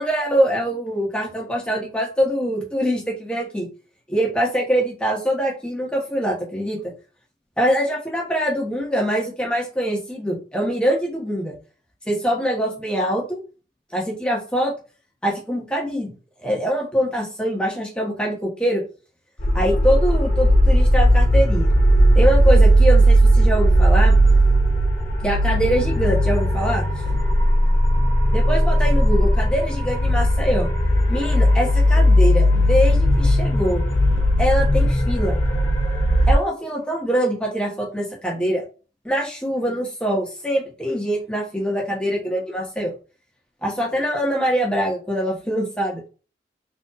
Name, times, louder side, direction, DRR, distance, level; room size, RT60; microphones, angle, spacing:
voice 1, 0.0-3.7 4.1-6.9 7.6-11.5 12.1-13.4 13.9-14.7 15.2-16.1 16.4-18.8 19.5-21.7 22.1-24.2 25.2-26.9 28.3-30.7 31.1-33.8 34.4-35.4 36.3-38.6 39.0-42.9 43.6-46.0, equal, 5° left, -2 dB, 1.2 m, -23 dB
sound 1, 19.4-36.3, equal, 40° left, 1.2 m, -17 dB
4.0 x 3.4 x 2.5 m, 0.35 s
head